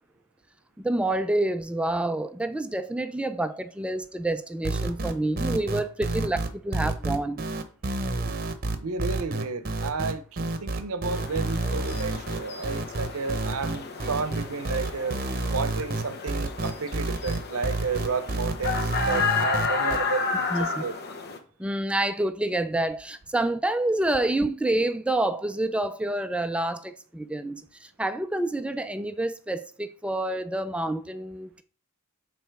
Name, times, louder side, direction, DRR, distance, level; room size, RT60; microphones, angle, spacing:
voice 1, 0.8-7.4 20.5-20.8 21.6-27.6 28.0-31.6, right 1 dB, 5° right, 0.4 m, -28 dB
sound 1, 4.6-20.0, right 2 dB, 45° right, 0.8 m, -29 dB
voice 2, 8.8-15.2 15.5-20.9, right 4 dB, 75° right, 0.7 m, -32 dB
sound 2, 11.1-21.4, left 4 dB, 50° left, 0.9 m, -32 dB
6.8 x 4.1 x 4.6 m
head